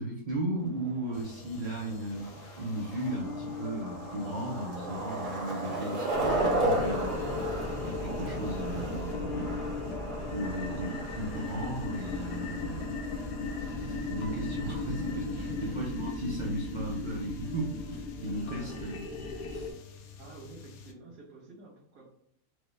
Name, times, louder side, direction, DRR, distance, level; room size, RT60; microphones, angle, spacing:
voice 1, 0.0-7.2 7.8-9.6 10.3-12.9 13.8-19.0 19.5-19.7, right 1 dB, 70° right, -3 dB, 0.4 m, -36 dB
Skateboard, 0.6-15.8, right 1 dB, 25° right, 1.1 m, -36 dB
sound 1, 1.1-20.9, left 6 dB, 65° left, 0.7 m, -46 dB
voice 2, 1.3-1.6 15.1-15.7 18.2-18.8 20.2-22.1, right 2 dB, 90° right, -5 dB, 1.6 m, -50 dB
sound 2, 6.1-19.7, left 2 dB, 90° left, 1.4 m, -36 dB
4.5 x 2.3 x 3.1 m, 0.71 s
omnidirectional pair, 1.7 m